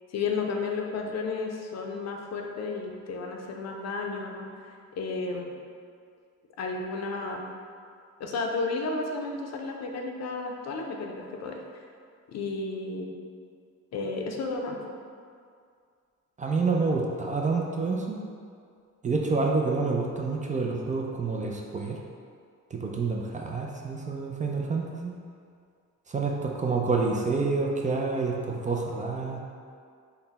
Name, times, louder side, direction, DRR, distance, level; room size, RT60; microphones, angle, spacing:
voice 1, 0.1-5.5 6.6-7.4 8.2-11.6 12.3-13.1 13.9-14.9, left 3 dB, 60° left, 2 dB, 0.5 m, -32 dB
voice 2, 16.4-18.2 19.0-22.0 22.7-25.1 26.1-29.4, right 4 dB, 25° right, 0 dB, 0.4 m, -28 dB
4.0 x 2.2 x 4.0 m, 2.2 s
cardioid pair, 90°, 30 cm